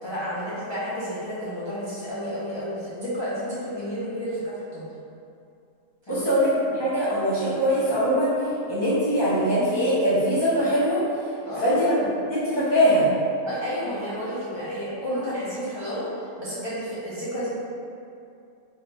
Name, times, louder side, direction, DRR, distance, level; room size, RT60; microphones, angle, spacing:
voice 1, 0.0-4.8 6.1-6.3 11.4-11.8 13.5-16.1 16.4-17.5, equal, 35° left, -12 dB, 0.4 m, -31 dB
voice 2, 6.1-8.3 8.7-11.0 11.6-12.0 12.3-13.1, equal, 30° right, -12 dB, 0.5 m, -22 dB
2.7 x 2.2 x 3.9 m, 2.5 s
omnidirectional pair, 1.4 m